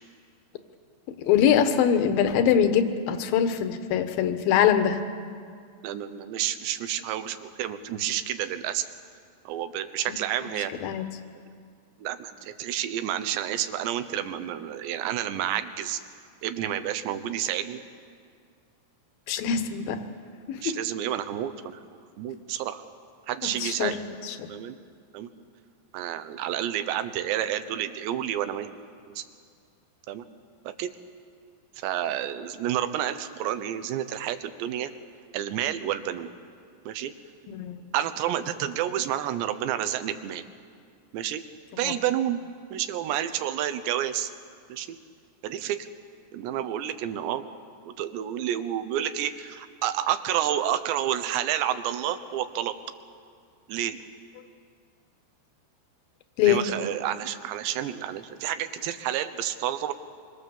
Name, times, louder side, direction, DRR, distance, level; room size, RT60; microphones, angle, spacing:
voice 1, 1.2-5.0 10.4-10.5 10.8-11.1 19.3-20.0 20.5-20.8 23.4-24.5 37.5-37.8 41.8-41.9 56.4-56.7, left 8 dB, 70° left, 8 dB, 2.6 m, -23 dB
voice 2, 5.8-8.9 9.5-10.7 12.0-16.0 16.4-17.8 20.6-21.8 22.2-22.8 23.3-24.0 24.5-24.8 25.1-25.3 25.9-28.7 29.1-29.2 30.1-30.2 30.8-30.9 31.8-34.9 35.3-36.3 36.9-37.1 37.9-40.4 41.1-41.4 41.8-42.4 42.7-44.3 44.7-44.9 45.4-45.8 46.3-47.5 47.8-52.7 53.7-54.0 56.4-59.9, right 11 dB, 85° right, 11 dB, 3.2 m, -29 dB
25.5 x 25.0 x 7.2 m, 2.2 s
omnidirectional pair, 4.9 m